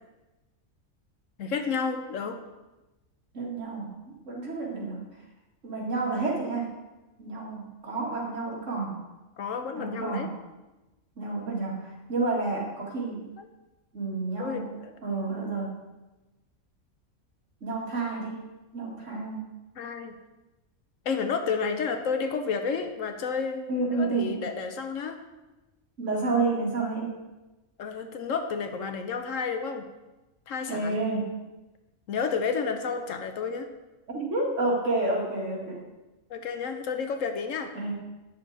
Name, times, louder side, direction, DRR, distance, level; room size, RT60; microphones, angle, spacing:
voice 1, 1.4-2.4 9.4-10.3 13.4-13.5 14.4-14.9 19.8-20.1 21.0-25.2 27.8-29.9 30.5-31.0 32.1-33.7 36.3-37.7, left 5 dB, 65° left, 7 dB, 1.0 m, -31 dB
voice 2, 3.3-3.9 4.2-5.0 5.6-6.7 7.2-9.0 9.7-10.3 11.2-13.2 13.9-14.7 15.0-15.8 17.6-18.5 18.7-19.5 23.7-24.4 26.0-27.1 30.7-31.3 34.1-35.8 37.7-37.9, right 3 dB, 60° right, -3 dB, 2.3 m, -30 dB
9.5 x 6.8 x 3.9 m, 1.1 s
omnidirectional pair, 1.5 m